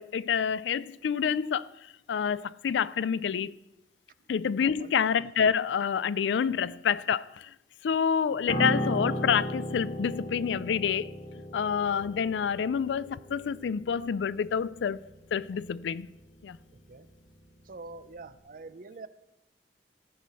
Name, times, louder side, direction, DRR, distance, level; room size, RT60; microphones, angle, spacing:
voice 1, 0.0-3.6 4.3-7.5 7.8-11.2 11.5-16.1 16.4-16.6, left 7 dB, 85° left, 0.4 m, -28 dB
voice 2, 4.6-4.9 6.5-6.6 8.3-8.4 16.9-17.1 17.6-19.1, right 3 dB, 50° right, 0.5 m, -45 dB
Piano, 8.5-17.9 18.1-18.4, equal, 55° left, 1.6 m, -36 dB
14.0 x 6.4 x 5.5 m
head